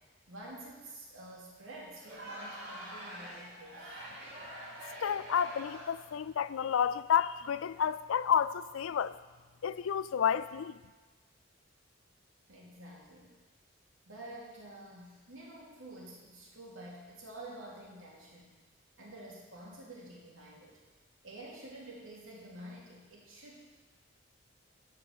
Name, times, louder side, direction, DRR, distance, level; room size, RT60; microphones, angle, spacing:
voice 1, 0.3-4.0 12.5-13.4 14.0-18.6 19.0-20.8 21.2-23.6, right 1 dB, 85° right, 3.0 m, -49 dB
Crowd, 1.9-6.1, equal, 55° right, 3.8 m, -46 dB
voice 2, 5.0-9.2 9.6-10.8, left 8 dB, 80° left, 0.4 m, -30 dB
11.5 x 5.1 x 7.3 m
head